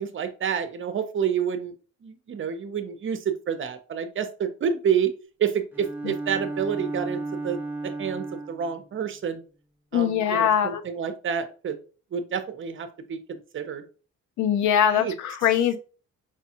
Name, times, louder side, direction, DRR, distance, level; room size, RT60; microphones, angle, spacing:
voice 1, 0.0-1.7 2.0-5.1 5.4-9.4 9.9-11.8 12.1-13.8 14.9-15.1, right 7 dB, 40° right, 10 dB, 0.6 m, -29 dB
Bowed string instrument, 5.7-8.8, right 2 dB, 5° right, 0.8 m, -33 dB
voice 2, 9.9-10.8 14.4-15.8, left 9 dB, 70° left, 11 dB, 0.5 m, -22 dB
4.8 x 2.3 x 2.8 m, 0.37 s
cardioid pair, 90°, 30 cm